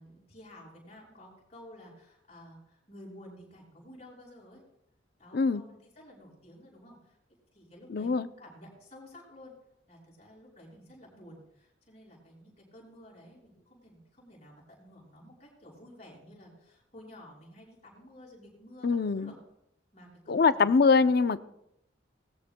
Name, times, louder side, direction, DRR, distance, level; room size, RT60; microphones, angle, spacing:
voice 1, 0.0-4.6 5.2-7.2 7.5-9.6 9.9-19.3 19.9-21.1, left 1 dB, 35° left, -3 dB, 5.6 m, -52 dB
voice 2, 5.3-5.6 7.9-8.3 18.8-19.3 20.3-21.4, left 4 dB, 55° left, 13 dB, 0.5 m, -23 dB
19.5 x 14.0 x 2.2 m, 0.81 s
head